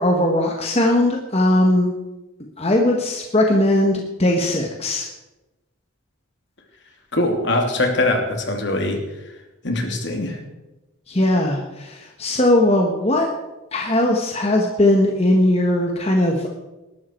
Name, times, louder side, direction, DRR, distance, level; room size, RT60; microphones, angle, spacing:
voice 1, 0.0-1.9 2.6-5.1 11.1-13.3 13.7-16.5, left 1 dB, 30° left, 1 dB, 1.5 m, -19 dB
voice 2, 7.1-9.0 9.6-10.4, left 2 dB, 55° left, 3 dB, 2.8 m, -22 dB
19.0 x 12.5 x 4.6 m, 1.0 s
head